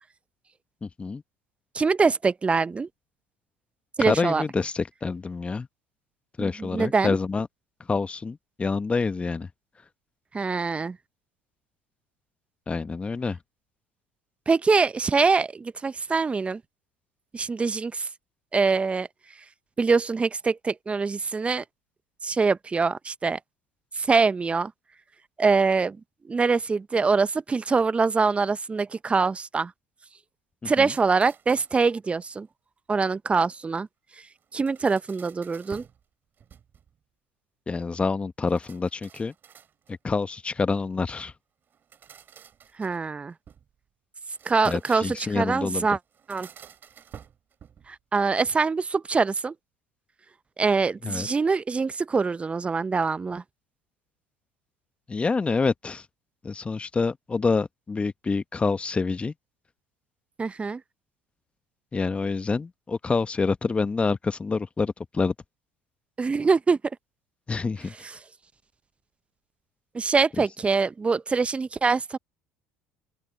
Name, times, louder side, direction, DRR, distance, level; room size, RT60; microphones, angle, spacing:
voice 1, 0.8-1.2 4.0-5.7 6.4-7.5 7.9-9.5 12.7-13.4 30.6-30.9 37.7-39.3 39.9-41.3 44.6-45.9 51.0-51.3 55.1-56.0 56.4-59.3 61.9-65.3 67.5-67.9, left 4 dB, 25° left, 1.2 m, -27 dB
voice 2, 1.7-2.9 4.0-4.4 6.4-7.2 10.3-11.0 14.5-16.6 17.3-18.1 18.5-19.1 19.8-21.6 22.2-23.4 23.9-24.7 25.4-26.0 26.2-29.7 30.7-32.5 32.9-33.9 34.5-35.8 42.8-43.3 44.4-46.0 46.3-46.5 47.9-49.5 50.6-53.4 60.4-60.8 66.2-66.8 68.0-68.1 69.9-72.2, right 4 dB, 25° right, 0.8 m, -24 dB
sound 1, 30.8-32.0 34.4-36.0 36.4-37.0 38.5-40.1 41.7-43.7 44.2-45.4 46.1-48.0, right 8 dB, 40° right, 3.1 m, -50 dB
open air
hypercardioid pair, 70°, 5 cm